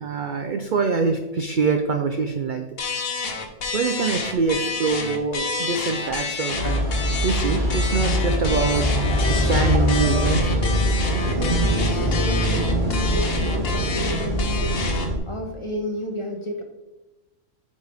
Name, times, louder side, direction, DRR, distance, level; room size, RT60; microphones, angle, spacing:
voice 1, 0.0-2.7 3.7-6.9 7.2-8.9 9.3-10.7, right 4 dB, 65° right, 6 dB, 0.5 m, -24 dB
sound 1, 2.8-15.2, left 4 dB, 50° left, 1.1 m, -29 dB
sound 2, 6.5-15.1, equal, 35° right, 2.2 m, -23 dB
voice 2, 11.3-16.6, left 1 dB, 25° left, 2 dB, 0.7 m, -31 dB
9.7 x 4.2 x 3.4 m, 1.1 s
omnidirectional pair, 1.4 m